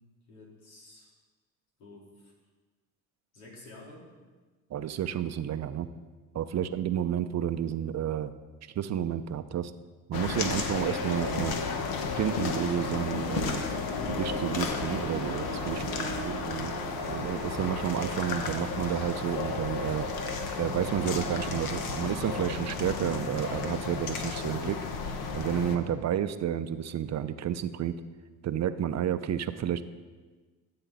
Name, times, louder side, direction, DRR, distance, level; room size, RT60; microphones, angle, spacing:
voice 1, 0.3-1.1 1.8-2.3 3.3-4.1 6.5-6.7 15.7-16.5, left 2 dB, 85° left, -3 dB, 3.9 m, -50 dB
voice 2, 4.7-5.9 6.3-8.3 8.7-9.7 10.1-11.6 12.2-13.7 14.1-16.7 17.1-20.1 20.6-24.8 25.3-28.0 28.4-29.8, right 10 dB, 40° right, 12 dB, 0.6 m, -31 dB
sound 1, 10.1-25.8, left 4 dB, 60° left, 1.4 m, -33 dB
sound 2, 14.3-22.3, right 11 dB, 80° right, 0.7 m, -43 dB
14.5 x 7.8 x 4.1 m, 1.3 s
supercardioid pair, 85°, 41 cm